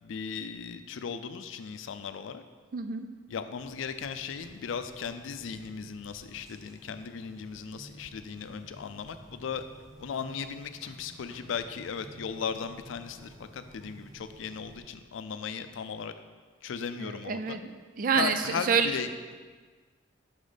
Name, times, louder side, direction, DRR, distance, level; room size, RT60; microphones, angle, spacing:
voice 1, 0.0-2.4 3.3-9.6 10.0-16.1 16.6-17.6 18.1-19.3, left 6 dB, 80° left, 10 dB, 0.4 m, -37 dB
voice 2, 2.7-3.1 17.0-17.6 18.0-18.9, right 6 dB, 45° right, 8 dB, 0.3 m, -27 dB
sound 1, 3.6-14.8, right 1 dB, 20° right, 0.8 m, -53 dB
6.2 x 4.0 x 4.9 m, 1.5 s
head